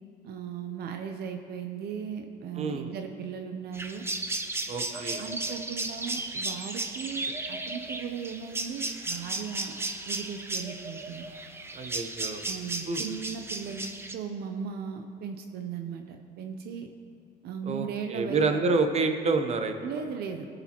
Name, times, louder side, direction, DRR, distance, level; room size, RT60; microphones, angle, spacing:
voice 1, 0.2-4.0 4.9-9.8 10.1-11.3 12.4-16.9 17.4-18.6 19.8-20.5, right 7 dB, 70° right, 6 dB, 0.7 m, -37 dB
voice 2, 2.6-2.9 4.7-5.2 11.7-12.4 12.9-13.0 17.7-19.7, right 3 dB, 40° right, 6 dB, 0.9 m, -28 dB
sound 1, 3.7-14.2, right 2 dB, 15° right, 0.7 m, -35 dB
18.5 x 6.8 x 3.0 m, 2.3 s
cardioid pair, 110°, 17 cm